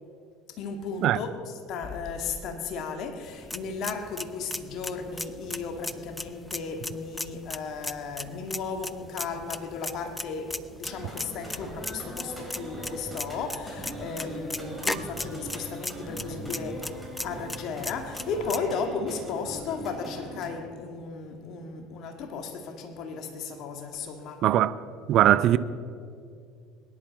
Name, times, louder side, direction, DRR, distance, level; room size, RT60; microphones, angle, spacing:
voice 1, 0.5-24.4, left 5 dB, 55° left, 2.0 m, -35 dB
sound 1, 3.3-18.6, left 2 dB, 10° left, 0.6 m, -38 dB
sound 2, 10.8-20.5, right 1 dB, 5° right, 4.3 m, -40 dB
voice 2, 24.4-24.7 25.1-25.6, right 12 dB, 55° right, 0.5 m, -20 dB
22.0 x 11.0 x 4.2 m
hypercardioid pair, 65°, 0 cm